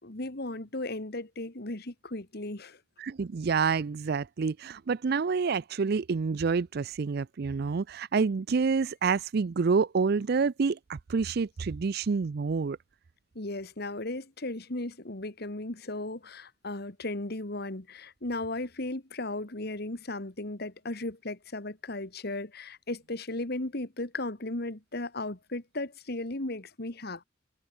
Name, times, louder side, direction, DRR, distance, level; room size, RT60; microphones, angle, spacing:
voice 1, 0.0-2.8 13.4-27.2, left 2 dB, 55° left, 2.2 m, -36 dB
voice 2, 3.0-12.8, right 5 dB, 55° right, 0.4 m, -28 dB
head